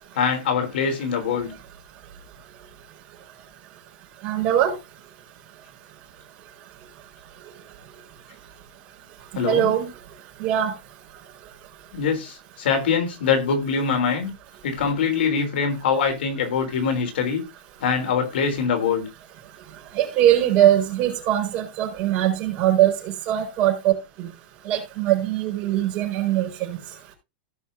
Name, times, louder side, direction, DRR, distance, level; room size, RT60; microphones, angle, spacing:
voice 1, 0.1-1.5 9.3-9.7 11.9-14.3 14.6-17.4 17.8-19.1, left 6 dB, 90° left, 3.7 m, -23 dB
voice 2, 4.2-4.8 9.4-9.9 10.4-10.7 19.9-23.0 23.3-23.9 24.2-24.3 24.6-26.8, right 12 dB, 30° right, 5.0 m, -21 dB
17.0 x 5.8 x 2.7 m
supercardioid pair, 175°, 5 cm